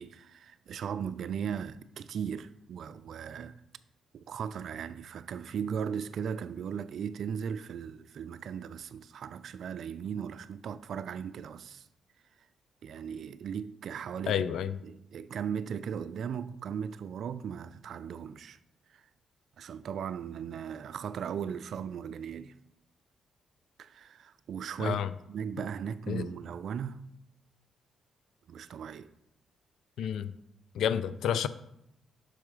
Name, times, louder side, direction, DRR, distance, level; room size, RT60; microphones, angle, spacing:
voice 1, 0.0-3.6 4.1-11.9 12.8-14.4 14.8-18.6 18.9-19.0 19.6-22.5 23.8-25.0 25.3-27.1 28.5-29.1 30.0-30.1, right 7 dB, 70° right, 0.3 m, -37 dB
voice 2, 14.3-14.8 24.8-25.1 26.1-26.3 30.0-30.3 30.7-31.5, left 8 dB, 75° left, 0.3 m, -30 dB
6.2 x 4.5 x 4.9 m
supercardioid pair, 55°, 0 cm